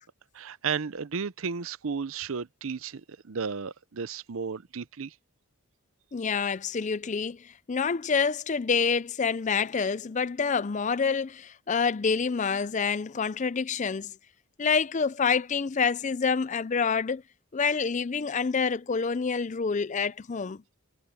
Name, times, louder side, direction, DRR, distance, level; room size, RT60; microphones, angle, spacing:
voice 1, 0.3-5.1, right 5 dB, 65° right, 0.6 m, -33 dB
voice 2, 6.1-14.1 14.6-17.2 17.5-20.6, left 5 dB, 35° left, 0.4 m, -27 dB
head